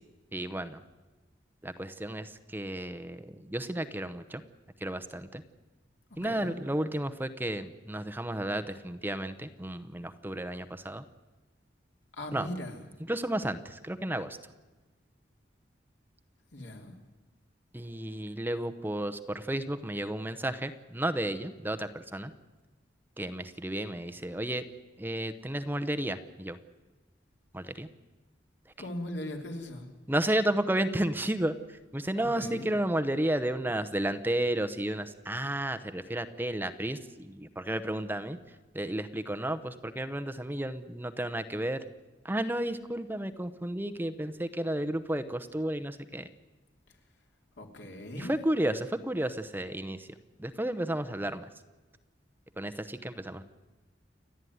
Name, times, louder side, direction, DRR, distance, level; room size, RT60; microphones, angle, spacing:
voice 1, 0.3-0.8 1.6-4.4 4.8-5.4 6.2-11.0 12.3-12.5 13.1-14.4 17.7-22.3 23.2-24.6 25.0-26.6 27.5-27.9 30.1-31.5 31.9-38.4 38.7-41.8 42.2-46.3 48.2-50.1 50.4-51.5 52.6-53.4, right 1 dB, 10° right, 9 dB, 0.9 m, -32 dB
voice 2, 12.1-12.8 16.5-16.9 28.8-29.8 32.2-32.7 47.6-48.3, left 1 dB, 80° left, 3 dB, 3.0 m, -39 dB
29.0 x 11.5 x 9.4 m, 1.2 s
head